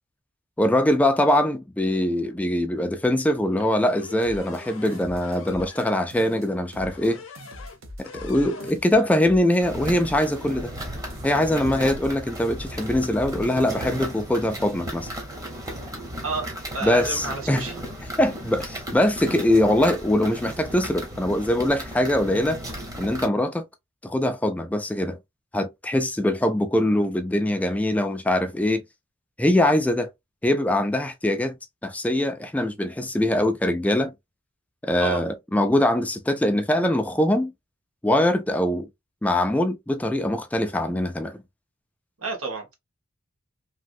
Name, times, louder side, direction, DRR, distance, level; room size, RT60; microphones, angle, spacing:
voice 1, 0.6-7.2 8.0-10.7 11.2-15.1 16.8-17.7 18.2-22.6 23.0-23.6 24.0-25.2 25.5-28.8 29.4-30.1 30.4-31.6 31.8-34.1 34.8-37.5 38.0-38.9 39.2-41.4, left 1 dB, 5° left, 0.3 m, -22 dB
sound 1, 3.8-6.0 6.8-7.8 8.0-9.1, left 4 dB, 75° left, 0.8 m, -44 dB
sound 2, 4.2-5.9 6.1-7.1 7.4-10.9 11.1-12.1 12.4-14.2, equal, 70° right, 0.8 m, -43 dB
sound 3, 9.6-23.3, equal, 15° right, 0.9 m, -35 dB
voice 2, 16.2-17.7 35.0-35.2 42.2-42.7, right 4 dB, 90° right, 1.4 m, -30 dB
3.1 x 2.6 x 2.5 m
head